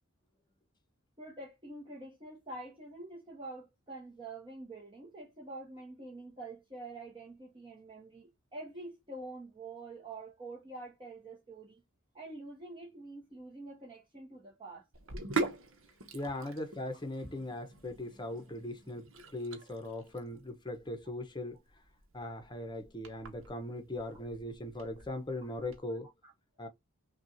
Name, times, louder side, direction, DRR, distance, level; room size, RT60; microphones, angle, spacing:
voice 1, 1.2-11.8 12.1-14.9 16.3-16.5 19.5-19.6 26.2-26.3, right 2 dB, 25° right, 1.1 m, -46 dB
Sink (filling or washing), 14.9-25.8, right 3 dB, 65° right, 1.0 m, -43 dB
voice 2, 16.1-21.6 22.1-26.1 26.6-26.7, left 1 dB, 20° left, 0.9 m, -39 dB
5.9 x 2.4 x 2.7 m
head